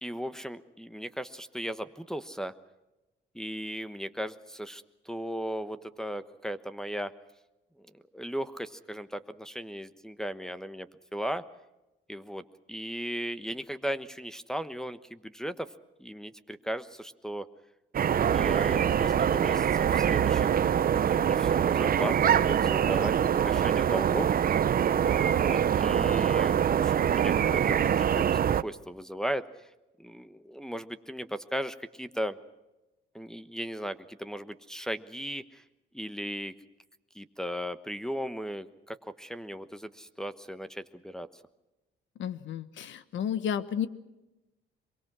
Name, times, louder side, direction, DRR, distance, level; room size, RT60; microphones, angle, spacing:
voice 1, 0.0-2.5 3.3-7.1 7.9-11.4 12.1-12.4 12.7-15.7 16.0-17.5 18.0-20.6 21.0-24.3 25.0-29.4 30.0-32.4 33.1-35.6 35.9-36.5 37.1-41.3, equal, 5° left, 8 dB, 1.1 m, -37 dB
sound 1, 17.9-28.6, right 9 dB, 45° right, 0.8 m, -24 dB
voice 2, 42.2-43.9, left 8 dB, 75° left, 14 dB, 1.3 m, -32 dB
24.0 x 23.0 x 6.2 m, 1.0 s
cardioid pair, 90°, 20 cm